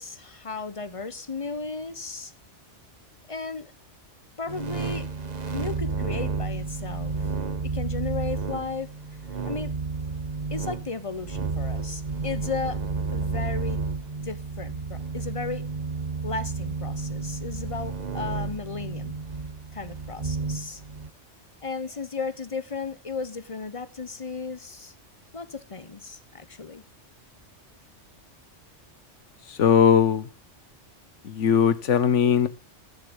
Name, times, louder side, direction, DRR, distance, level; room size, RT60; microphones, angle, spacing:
voice 1, 0.0-2.3 3.3-3.7 4.4-5.1 5.5-7.3 7.6-8.9 9.4-9.7 10.5-12.8 13.1-13.8 14.2-15.6 16.2-19.2 19.7-20.8 21.6-24.9 25.3-26.8, left 4 dB, 30° left, 1.1 m, -35 dB
sound 1, 4.5-21.1, right 4 dB, 35° right, 1.2 m, -31 dB
voice 2, 29.6-30.3 31.2-32.5, left 7 dB, 80° left, 1.3 m, -19 dB
11.5 x 9.9 x 5.4 m
omnidirectional pair, 1.2 m